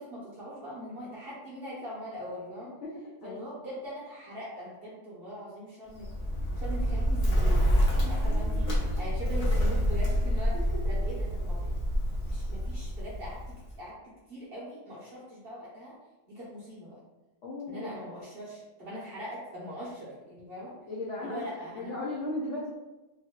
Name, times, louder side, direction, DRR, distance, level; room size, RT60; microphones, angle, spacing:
voice 1, 0.0-2.7 3.2-6.1 6.5-8.7 8.9-10.6 10.9-11.7 12.3-15.9 16.3-17.0 17.7-20.8 21.2-21.9, equal, 50° right, -7 dB, 0.7 m, -41 dB
Bird, 5.9-13.7, equal, 90° left, 0.3 m, -27 dB
voice 2, 8.0-8.9 10.5-10.6 17.4-17.9 20.9-22.7, left 2 dB, 70° left, -6 dB, 0.7 m, -37 dB
2.9 x 2.6 x 2.9 m, 1.1 s
omnidirectional pair, 1.7 m